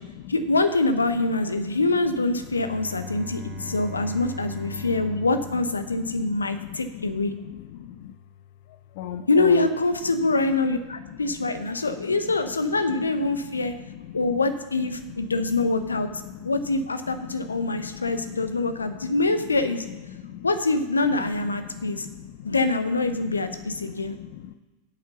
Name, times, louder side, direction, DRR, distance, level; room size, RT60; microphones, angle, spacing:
voice 1, 0.3-7.3 9.3-13.7 14.1-16.1 16.4-19.8 20.4-22.0 22.4-24.1, left 3 dB, 75° left, 9 dB, 0.9 m, -24 dB
Bowed string instrument, 2.4-6.7, equal, 35° right, 1.6 m, -40 dB
voice 2, 3.1-4.3 4.7-4.9 5.9-8.1 9.0-9.7 11.9-12.1 13.5-14.2 15.2-15.6 16.2-16.5 17.2-18.5 20.1-20.5 21.7-22.6 23.2-23.3 23.8-24.5, left 11 dB, 50° left, 11 dB, 0.5 m, -40 dB
9.2 x 8.3 x 5.8 m, 1.2 s
figure-of-eight pair, 90°, 0 cm